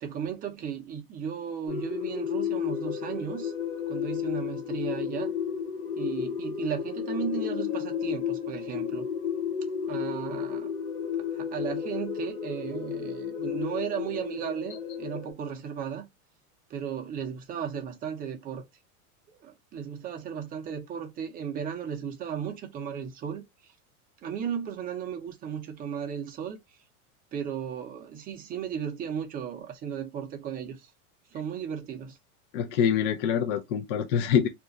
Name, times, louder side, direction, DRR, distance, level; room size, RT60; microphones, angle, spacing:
voice 1, 0.0-3.5 3.9-5.3 6.0-9.1 9.9-10.7 11.2-16.0 16.7-18.6 19.3-23.7 24.2-26.8 27.3-30.9 31.3-32.2, right 8 dB, 20° right, 0.6 m, -35 dB
sound 1, 1.7-15.3, left 8 dB, 15° left, 0.7 m, -32 dB
voice 2, 32.5-34.5, left 8 dB, 50° left, 0.6 m, -25 dB
2.5 x 2.2 x 3.7 m
supercardioid pair, 140°, 44 cm